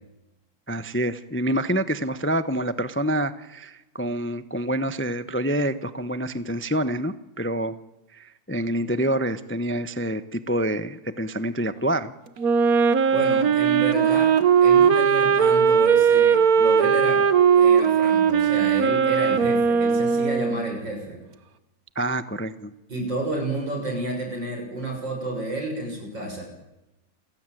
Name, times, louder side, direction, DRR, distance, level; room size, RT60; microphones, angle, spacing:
voice 1, 0.7-7.8 8.1-12.1 21.9-22.7, right 1 dB, 10° left, 13 dB, 0.5 m, -27 dB
Wind instrument woodwind instrument, 12.4-20.8, right 7 dB, 55° right, 1.6 m, -19 dB
voice 2, 13.1-14.3 14.6-17.2 17.5-21.2 22.9-26.4, right 2 dB, 90° right, 3 dB, 7.6 m, -31 dB
28.5 x 16.5 x 9.2 m, 0.96 s
omnidirectional pair, 1.9 m